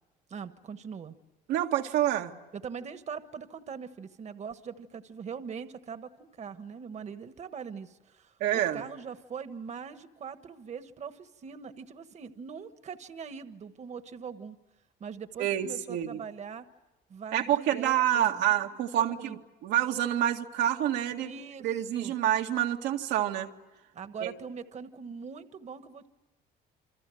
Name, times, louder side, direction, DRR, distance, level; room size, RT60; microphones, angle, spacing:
voice 1, 0.3-1.1 2.5-14.6 15.0-16.6 17.1-18.7 19.0-19.4 21.2-22.1 23.9-26.1, right 6 dB, 40° right, 10 dB, 1.4 m, -42 dB
voice 2, 1.5-2.3 8.4-8.8 15.4-16.2 17.3-21.3 21.6-23.5 24.2-24.3, right 11 dB, 90° right, 3 dB, 2.0 m, -27 dB
28.5 x 25.5 x 7.7 m, 1.1 s
cardioid pair, 110°, 17 cm